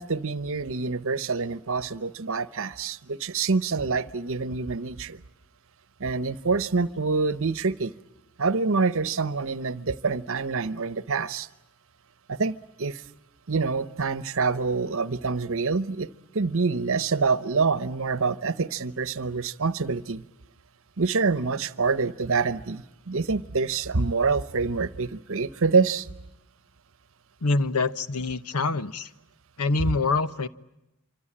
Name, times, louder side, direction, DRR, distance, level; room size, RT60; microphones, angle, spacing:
voice 1, 0.0-5.2 6.0-7.9 8.4-11.5 12.3-13.0 13.5-16.1 16.3-20.2 21.0-26.1, right 4 dB, 65° right, 15 dB, 0.9 m, -26 dB
voice 2, 27.4-29.1 29.6-30.5, left 3 dB, 90° left, 13 dB, 1.0 m, -25 dB
26.5 x 25.0 x 8.8 m, 0.93 s
head